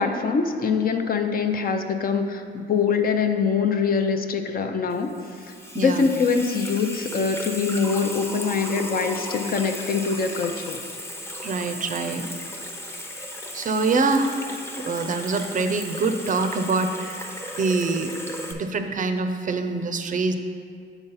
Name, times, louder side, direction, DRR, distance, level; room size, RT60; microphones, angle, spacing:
voice 1, 0.0-5.1 5.8-10.8, left 5 dB, 45° left, 6 dB, 0.6 m, -24 dB
Water tap faucet / Sink (filling or washing), 4.9-18.5, left 1 dB, 15° left, 0.7 m, -35 dB
voice 2, 5.7-6.1 11.4-12.2 13.5-14.4 14.7-18.1 18.5-20.3, right 3 dB, 40° right, 7 dB, 0.5 m, -25 dB
7.2 x 3.9 x 5.6 m, 2.2 s
cardioid pair, 90°, 20 cm